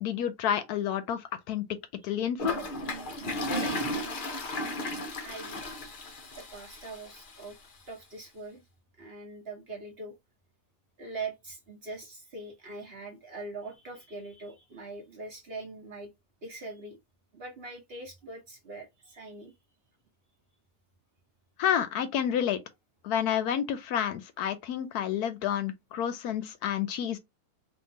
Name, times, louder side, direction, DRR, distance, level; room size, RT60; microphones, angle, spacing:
voice 1, 0.0-1.2 1.5-1.6 2.0-2.5 21.6-22.6 23.0-27.2, left 9 dB, 75° left, 1.0 m, -29 dB
Toilet flush, 2.4-7.4, left 1 dB, 45° left, 0.7 m, -34 dB
voice 2, 3.5-4.4 5.2-5.6 6.4-7.6 7.9-8.6 9.0-10.1 11.0-16.1 16.4-17.0 17.3-19.5, right 3 dB, 45° right, 1.0 m, -42 dB
3.6 x 2.9 x 2.6 m
omnidirectional pair, 1.8 m